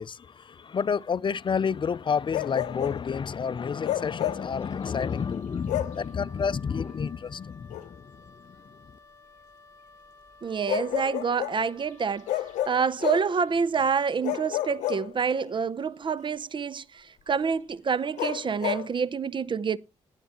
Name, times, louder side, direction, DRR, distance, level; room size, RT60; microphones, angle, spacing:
voice 1, 0.0-8.8, left 6 dB, 40° left, 0.5 m, -30 dB
Bark, 2.3-3.1 3.8-4.5 5.7-6.0 7.7-7.9 10.7-11.6 12.3-13.4 14.2-15.5 18.2-18.9, left 13 dB, 90° left, 0.7 m, -30 dB
Wind instrument woodwind instrument, 3.7-12.8, left 3 dB, 25° left, 4.1 m, -54 dB
voice 2, 10.4-19.8, right 6 dB, 40° right, 0.6 m, -27 dB
18.0 x 8.1 x 2.9 m
supercardioid pair, 60°, 12 cm